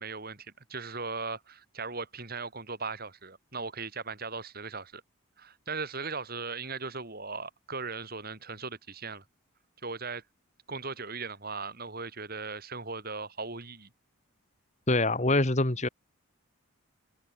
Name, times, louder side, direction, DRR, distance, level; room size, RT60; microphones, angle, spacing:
voice 1, 0.0-5.0 5.4-9.2 9.8-10.2 10.7-13.9, right 4 dB, 45° right, 3.5 m, -38 dB
voice 2, 14.9-15.9, left 2 dB, 30° left, 1.5 m, -25 dB
head